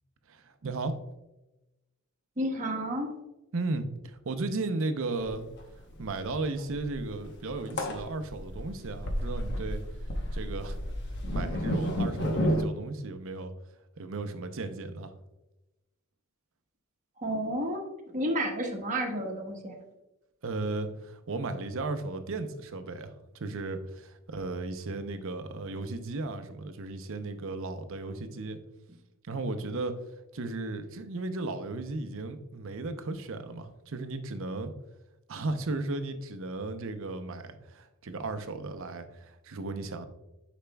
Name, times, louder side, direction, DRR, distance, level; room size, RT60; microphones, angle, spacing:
voice 1, 0.3-1.1 3.5-5.4 6.0-9.8 10.3-10.8 11.3-13.5 14.0-15.1 20.4-28.6 29.3-30.0 30.3-34.7 35.3-40.1, right 3 dB, 60° right, 9 dB, 0.7 m, -35 dB
voice 2, 2.4-3.1 17.2-17.8 18.1-19.8, right 1 dB, 35° right, 1 dB, 1.2 m, -31 dB
sound 1, 5.2-5.3 5.6-5.7 5.9-12.6, equal, 50° left, 0.9 m, -31 dB
10.0 x 5.1 x 2.3 m, 0.98 s
head